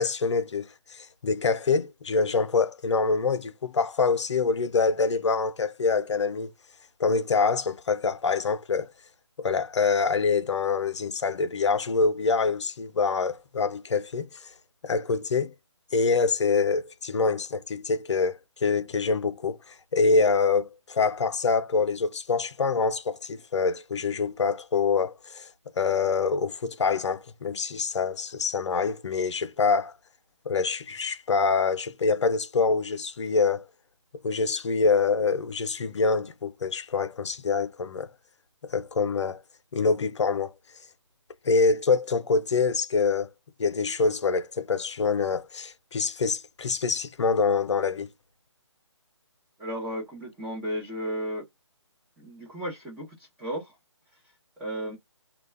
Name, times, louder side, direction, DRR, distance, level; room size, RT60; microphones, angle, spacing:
voice 1, 0.0-6.5 7.0-8.9 9.4-14.5 14.8-15.5 15.9-25.5 25.8-29.9 30.5-33.7 34.2-38.1 38.6-39.4 39.7-40.5 41.4-43.3 43.6-48.1, left 4 dB, 70° left, 0.5 m, -25 dB
voice 2, 49.6-51.5 52.2-53.8 54.6-55.0, equal, 5° right, 0.6 m, -34 dB
2.3 x 2.1 x 3.2 m
figure-of-eight pair, 155°, 16 cm